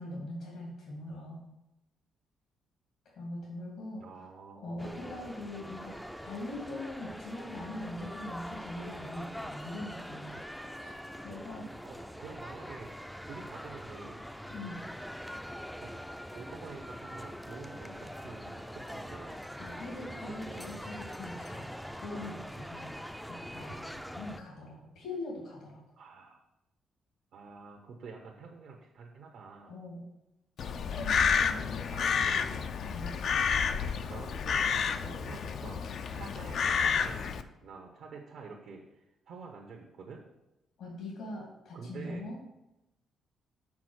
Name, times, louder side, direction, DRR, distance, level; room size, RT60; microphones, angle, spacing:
voice 1, 0.0-1.4 3.0-4.3 4.6-10.4 10.8-11.9 14.5-14.8 19.5-21.7 22.0-23.0 23.2-25.8 29.7-30.1 30.9-31.9 32.9-33.2 40.8-42.4, left 1 dB, 80° left, -3 dB, 2.2 m, -42 dB
voice 2, 4.0-5.2 11.8-12.9 13.2-14.3 15.8-15.9 16.3-19.4 20.3-20.6 26.0-26.4 27.3-29.7 31.9-32.7 34.1-35.8 36.1-40.2 41.7-42.3, right 4 dB, 75° right, 0 dB, 1.0 m, -48 dB
sound 1, 4.8-24.4, equal, ahead, 0.4 m, -43 dB
Crow, 30.6-37.4, left 6 dB, 60° left, 0.5 m, -30 dB
6.1 x 4.3 x 6.3 m, 0.91 s
cardioid pair, 90°, 0 cm